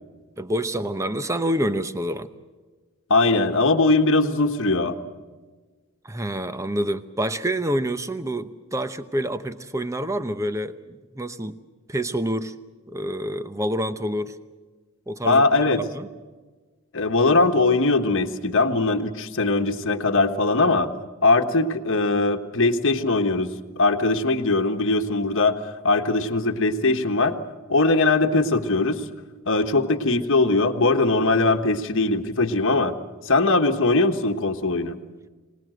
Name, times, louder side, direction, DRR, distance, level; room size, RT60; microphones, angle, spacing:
voice 1, 0.4-2.3 6.0-11.6 11.9-12.5 12.9-14.4 15.1-15.4 15.9-16.1, right 1 dB, 15° right, 11 dB, 0.8 m, -27 dB
voice 2, 3.1-5.0 15.2-15.8 16.9-20.9 21.2-25.6 25.8-27.4 27.7-29.0 29.4-32.9 33.2-35.0, left 3 dB, 60° left, 6 dB, 1.3 m, -20 dB
25.5 x 19.0 x 7.8 m, 1.3 s
head